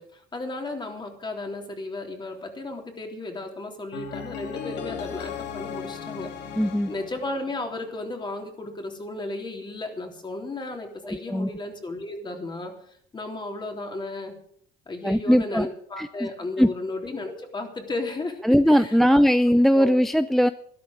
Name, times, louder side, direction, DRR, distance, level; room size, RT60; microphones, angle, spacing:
voice 1, 0.0-6.3 6.9-12.7 13.1-14.3 14.9-19.2 19.7-20.0, left 2 dB, 25° left, 3 dB, 3.5 m, -34 dB
sound 1, 3.9-8.0, left 7 dB, 80° left, 2.0 m, -36 dB
voice 2, 6.6-6.9 11.1-11.5 15.0-15.7 16.0-16.3 16.6-16.7 18.4-20.5, equal, ahead, 12 dB, 0.4 m, -20 dB
13.0 x 12.0 x 6.5 m, 0.65 s
cardioid pair, 110°, 17 cm